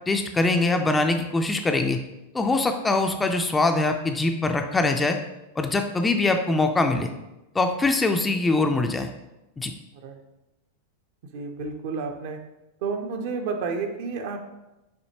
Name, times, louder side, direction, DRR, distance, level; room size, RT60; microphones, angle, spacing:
voice 1, 0.1-2.0 2.3-5.2 5.6-7.1 7.5-9.1 9.6-9.7, left 2 dB, 10° left, 5 dB, 0.3 m, -23 dB
voice 2, 11.3-12.4 12.8-14.4, right 4 dB, 50° right, 4 dB, 0.6 m, -30 dB
5.9 x 2.8 x 2.8 m, 0.97 s
figure-of-eight pair, 90°, 0 cm